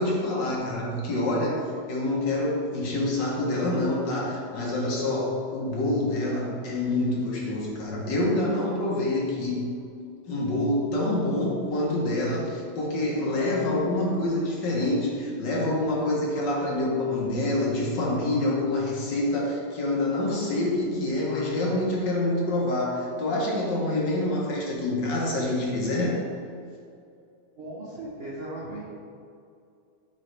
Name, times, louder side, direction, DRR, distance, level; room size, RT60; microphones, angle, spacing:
voice 1, 0.0-9.7 10.3-26.2, left 1 dB, 60° left, -3 dB, 1.7 m, -26 dB
voice 2, 27.6-28.8, right 1 dB, 50° right, -7 dB, 0.7 m, -37 dB
8.2 x 4.1 x 3.3 m, 2.4 s
omnidirectional pair, 2.3 m